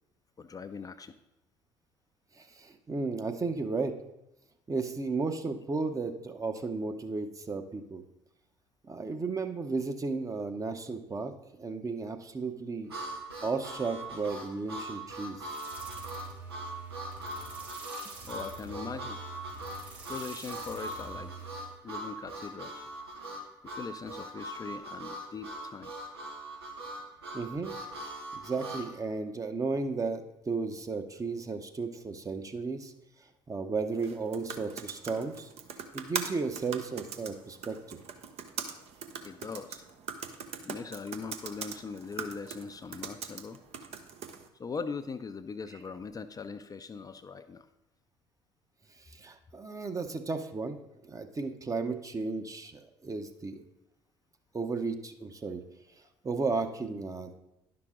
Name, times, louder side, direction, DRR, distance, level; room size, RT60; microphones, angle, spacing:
voice 1, 0.4-1.1 18.2-19.2 20.1-21.4 21.8-22.9 23.6-25.9 39.2-39.8 40.6-43.6 44.6-47.7, left 5 dB, 30° left, 8 dB, 0.5 m, -40 dB
voice 2, 2.4-3.9 4.7-8.0 8.8-11.3 11.6-12.9 13.4-15.4 18.2-18.3 27.3-27.7 28.0-32.9 33.5-35.5 35.9-38.0 49.1-53.6 54.5-55.6 56.2-57.4, right 4 dB, 25° right, 6 dB, 0.9 m, -34 dB
Harmonica, 12.9-28.9, right 1 dB, 90° right, 1.1 m, -41 dB
sound 1, 15.4-21.8, right 4 dB, 70° right, 2.6 m, -46 dB
sound 2, 33.9-44.5, right 6 dB, 55° right, 0.9 m, -41 dB
10.5 x 5.9 x 3.8 m, 0.91 s
hypercardioid pair, 60°, 13 cm